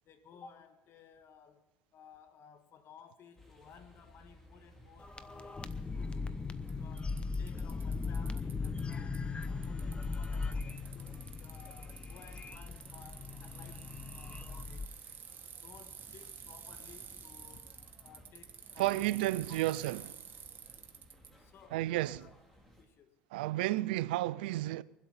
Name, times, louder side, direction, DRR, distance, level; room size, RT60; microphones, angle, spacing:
voice 1, 0.1-6.4 6.7-14.9 15.5-17.7 18.0-19.7 21.3-22.3 22.8-23.2, left 7 dB, 55° left, 1.8 m, -58 dB
sound 1, 3.4-22.9, left 1 dB, 5° left, 3.3 m, -60 dB
sound 2, 5.0-14.9, left 4 dB, 20° left, 1.0 m, -38 dB
Bicycle, 5.7-5.8 6.7-6.8 7.0-9.2 9.4-21.3, right 7 dB, 45° right, 1.8 m, -50 dB
voice 2, 18.8-20.1 21.7-22.2 23.3-24.8, right 16 dB, 85° right, 0.4 m, -32 dB
23.0 x 8.1 x 5.7 m
hypercardioid pair, 75°, 5 cm